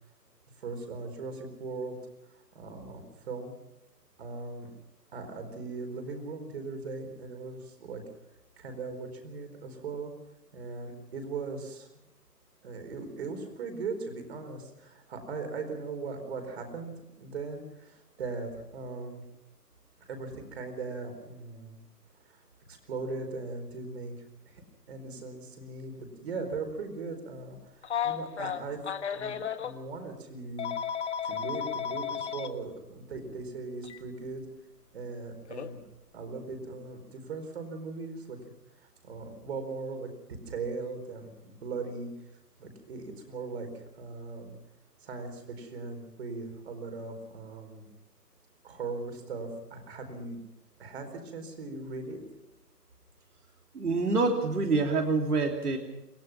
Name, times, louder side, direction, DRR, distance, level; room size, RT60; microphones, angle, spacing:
voice 1, 0.6-2.0 2.3-3.5 4.2-4.7 5.1-8.0 8.6-10.1 10.5-11.9 12.6-19.2 20.1-21.8 22.3-22.4 22.7-24.1 24.5-24.6 24.9-30.7 31.2-34.4 34.9-35.8 36.1-38.4 38.8-42.1 42.6-44.5 45.0-47.9 48.6-50.4 50.8-52.2, right 4 dB, 40° right, 6 dB, 4.4 m, -39 dB
Telephone, 27.8-29.7 30.6-32.5 33.8-34.0 35.5-35.7, left 8 dB, 45° left, 1.6 m, -33 dB
voice 2, 53.7-55.8, right 3 dB, 70° right, 2 dB, 3.4 m, -26 dB
28.0 x 16.0 x 6.1 m, 0.89 s
figure-of-eight pair, 150°, 48 cm